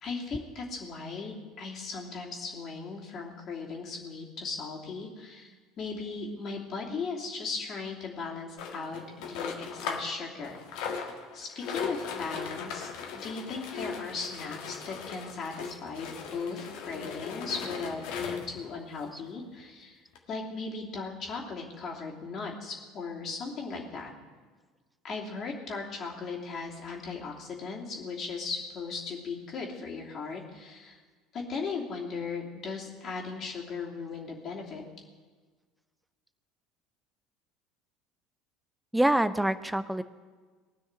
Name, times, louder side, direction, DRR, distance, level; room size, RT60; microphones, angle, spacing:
voice 1, 0.0-11.0 11.3-20.0 20.3-24.1 25.0-31.0 31.3-34.8, left 4 dB, 40° left, -2 dB, 2.9 m, -37 dB
sound 1, 8.6-10.1 10.4-18.6 19.3-19.4 19.6-19.7 20.2-20.3, left 6 dB, 60° left, 1.7 m, -38 dB
voice 2, 38.9-40.0, right 1 dB, 5° right, 13 dB, 0.7 m, -26 dB
19.0 x 6.4 x 9.6 m, 1.4 s
figure-of-eight pair, 65°, 0 cm